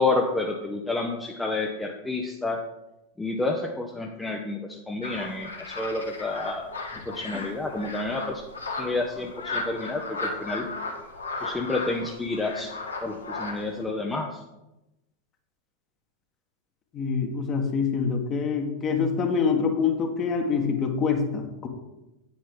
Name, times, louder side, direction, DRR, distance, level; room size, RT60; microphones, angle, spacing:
voice 1, 0.0-2.6 3.2-6.7 7.1-8.4 8.8-10.7 11.4-12.7 13.0-14.4, left 3 dB, 10° left, 1 dB, 0.8 m, -29 dB
sound 1, 5.0-13.8, left 3 dB, 75° left, 1.4 m, -35 dB
voice 2, 16.9-21.7, left 5 dB, 30° left, 4 dB, 1.5 m, -25 dB
8.9 x 8.7 x 3.8 m, 0.96 s
figure-of-eight pair, 90°, 0 cm